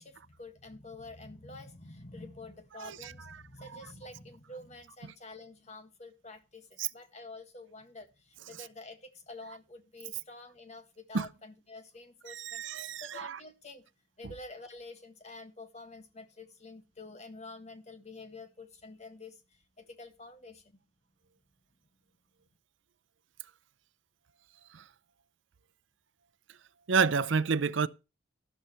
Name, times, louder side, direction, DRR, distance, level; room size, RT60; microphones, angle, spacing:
voice 1, 0.0-13.8 14.2-20.8, left 2 dB, 35° left, 1.7 m, -48 dB
voice 2, 2.8-3.4 3.7-3.8 6.8-6.9 11.1-11.3 12.3-13.4 24.7-24.8 26.9-27.9, right 5 dB, 75° right, 0.6 m, -30 dB
12.5 x 12.0 x 3.1 m
head